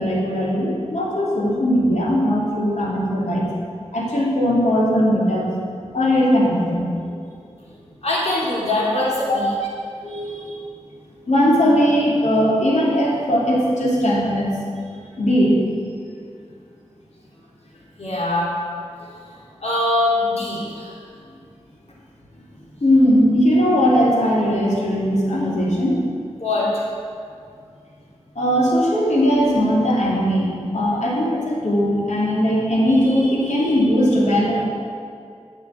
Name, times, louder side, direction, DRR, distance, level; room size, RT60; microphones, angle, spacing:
voice 1, 0.0-3.5 3.9-5.5 5.9-7.1 10.0-10.6 11.3-14.5 15.2-15.6 22.8-26.0 28.3-34.6, equal, 80° left, -5 dB, 3.0 m, -19 dB
voice 2, 8.0-9.5 18.0-18.5 19.6-20.9 26.4-26.7, left 2 dB, 60° left, -6 dB, 3.5 m, -22 dB
10.5 x 6.5 x 8.4 m, 2.3 s
cardioid pair, 40°, 12 cm